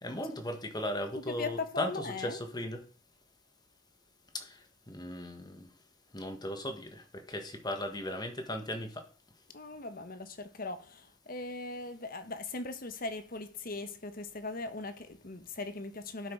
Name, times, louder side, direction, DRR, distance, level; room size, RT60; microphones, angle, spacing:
voice 1, 0.0-2.8 4.3-4.6 4.9-5.7 6.1-9.0, left 1 dB, 20° left, 1.6 m, -37 dB
voice 2, 1.2-2.4 9.5-16.3, left 3 dB, 50° left, 1.3 m, -39 dB
12.0 x 6.2 x 4.7 m
head